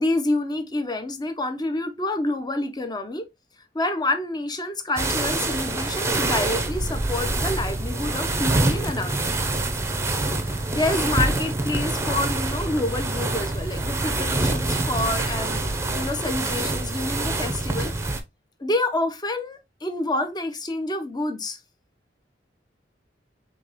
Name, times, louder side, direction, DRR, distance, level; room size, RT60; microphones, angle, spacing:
voice 1, 0.0-3.3 3.7-9.3 10.4-15.6 15.9-17.9 18.6-21.6, left 2 dB, 25° left, 0.7 m, -28 dB
sound 1, 5.0-18.2, right 2 dB, 15° right, 0.6 m, -26 dB
5.2 x 3.4 x 2.9 m
head